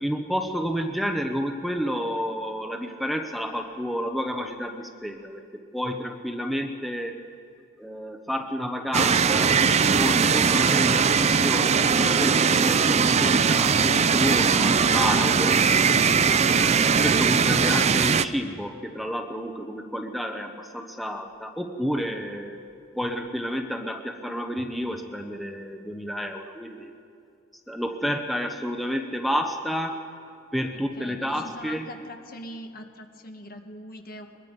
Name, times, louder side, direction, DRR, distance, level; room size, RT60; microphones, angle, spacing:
voice 1, 0.0-5.4 5.7-7.1 7.8-15.6 16.5-22.6 23.0-26.9 27.7-30.0 30.5-31.9, equal, ahead, 4 dB, 0.9 m, -30 dB
sound 1, 8.9-18.3, right 6 dB, 35° right, 0.5 m, -20 dB
voice 2, 30.7-34.4, left 1 dB, 50° left, 5 dB, 1.6 m, -42 dB
22.0 x 22.0 x 5.3 m, 2.5 s
head